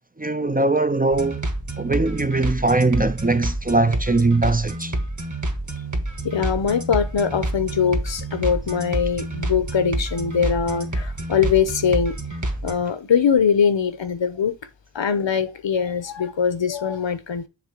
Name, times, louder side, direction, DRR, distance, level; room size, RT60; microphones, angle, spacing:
voice 1, 0.2-1.4 1.8-4.9, right 2 dB, 20° right, 0.5 m, -21 dB
sound 1, 1.1-12.7, right 1 dB, 40° right, 1.7 m, -28 dB
voice 2, 6.2-12.1 12.6-14.6 14.9-17.5, left 7 dB, 75° left, 1.0 m, -22 dB
7.1 x 3.4 x 5.1 m
wide cardioid pair, 65°, 45 cm